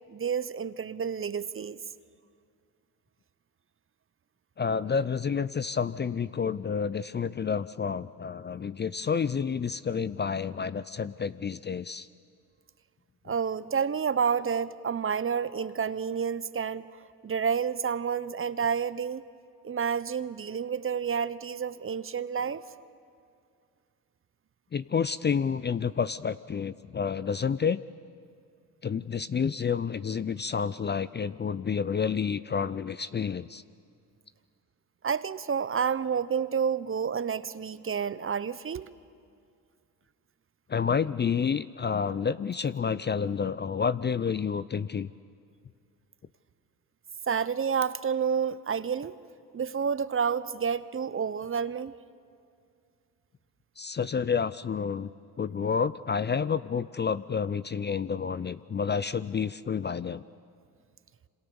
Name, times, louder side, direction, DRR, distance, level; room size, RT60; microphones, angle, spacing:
voice 1, 0.1-1.8 13.3-16.8 17.2-19.2 19.6-22.6 35.0-38.9 47.3-49.2 49.5-51.9, right 6 dB, 30° right, 16 dB, 0.9 m, -29 dB
voice 2, 4.6-12.1 24.7-27.8 28.8-33.6 40.7-45.1 53.8-55.1 55.4-60.2, left 6 dB, 25° left, 16 dB, 0.6 m, -29 dB
27.0 x 26.5 x 7.1 m, 2.3 s
supercardioid pair, 65°, 40 cm